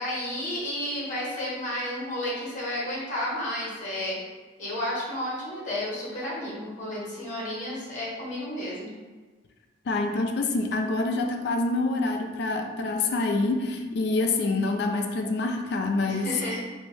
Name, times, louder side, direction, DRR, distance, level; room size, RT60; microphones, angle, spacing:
voice 1, 0.0-4.2 4.6-8.9 16.0-16.6, left 1 dB, 40° left, -6 dB, 1.0 m, -32 dB
voice 2, 9.9-16.3, left 3 dB, 60° left, 3 dB, 0.3 m, -26 dB
3.1 x 2.6 x 3.3 m, 1.3 s
head